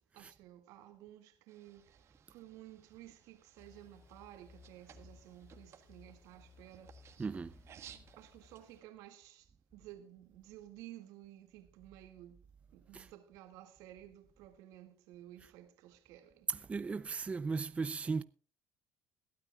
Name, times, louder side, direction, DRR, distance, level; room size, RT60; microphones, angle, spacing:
voice 1, 0.0-2.0 2.3-6.9 8.2-9.5 9.7-12.4 12.7-16.5, right 13 dB, 80° right, 2.1 m, -54 dB
sound 1, 1.5-8.8, right 9 dB, 50° right, 1.6 m, -60 dB
sound 2, 3.6-8.8, left 4 dB, 45° left, 3.3 m, -61 dB
voice 2, 7.2-7.5 12.9-13.1 16.5-18.2, right 4 dB, 20° right, 0.5 m, -36 dB
21.5 x 12.5 x 2.3 m
cardioid pair, 100°, 6 cm